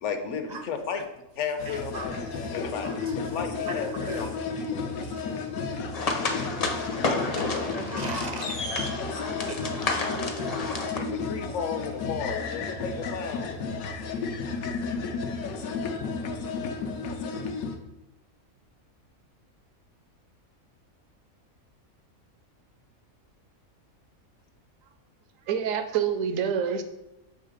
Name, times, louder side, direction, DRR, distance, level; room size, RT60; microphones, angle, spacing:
voice 1, 0.0-1.0 1.4-2.2 2.5-3.0 3.3-4.3 10.9-13.5, left 6 dB, 65° left, 0.9 m, -33 dB
sound 1, 1.6-17.8, left 4 dB, 85° left, 1.1 m, -33 dB
voice 2, 1.7-3.4 3.7-4.4 5.0-6.6 7.3-8.5 9.4-9.6, right 3 dB, 50° right, 0.5 m, -41 dB
sound 2, 5.9-11.0, left 3 dB, 40° left, 0.6 m, -30 dB
voice 3, 25.5-26.8, right 7 dB, 75° right, 1.0 m, -26 dB
7.3 x 3.1 x 5.0 m
omnidirectional pair, 1.4 m